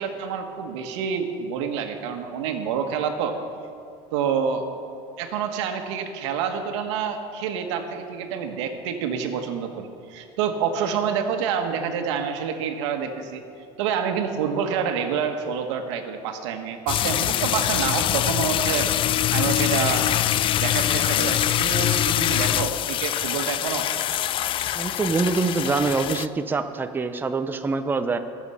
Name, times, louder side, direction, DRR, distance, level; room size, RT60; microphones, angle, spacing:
voice 1, 0.0-3.4 4.1-4.7 5.2-13.4 13.8-20.1 20.6-23.9, right 7 dB, 90° right, 5 dB, 1.4 m, -27 dB
sound 1, 16.9-26.3, left 12 dB, 35° left, 0.3 m, -24 dB
voice 2, 24.7-28.2, right 4 dB, 15° right, 8 dB, 0.6 m, -25 dB
20.5 x 7.2 x 5.6 m, 2.4 s
supercardioid pair, 125°, 15 cm